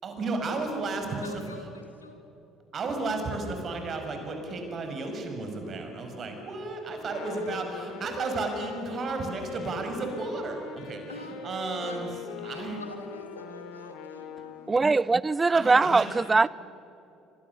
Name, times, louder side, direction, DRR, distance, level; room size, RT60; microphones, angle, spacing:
voice 1, 0.0-1.4 2.7-12.1 12.4-12.8 15.5-16.1, right 3 dB, 40° right, 5.8 m, -33 dB
voice 2, 1.0-2.2 7.1-7.7 11.1-11.4 11.7-12.0 12.4-15.1, left 3 dB, 90° left, 2.3 m, -45 dB
Wind instrument woodwind instrument, 6.9-14.9, left 6 dB, 65° left, 2.5 m, -42 dB
voice 3, 14.7-16.5, right 3 dB, 20° right, 0.5 m, -22 dB
29.0 x 25.5 x 7.1 m
figure-of-eight pair, 55°, 0 cm